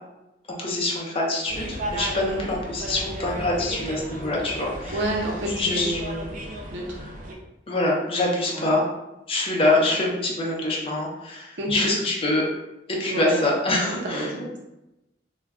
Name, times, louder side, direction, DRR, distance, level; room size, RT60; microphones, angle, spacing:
voice 1, 0.5-5.1 5.5-6.0 7.7-8.9 9.3-12.5 12.9-14.3, left 2 dB, 30° left, -2 dB, 0.6 m, -25 dB
sound 1, 1.5-7.3, right 1 dB, 45° right, 0.4 m, -34 dB
voice 2, 4.9-6.4 6.7-7.0 8.5-8.7 9.6-9.9 11.6-11.9 13.1-13.4 13.9-14.6, right 1 dB, 90° right, -2 dB, 0.7 m, -30 dB
2.2 x 2.2 x 3.4 m, 0.95 s
head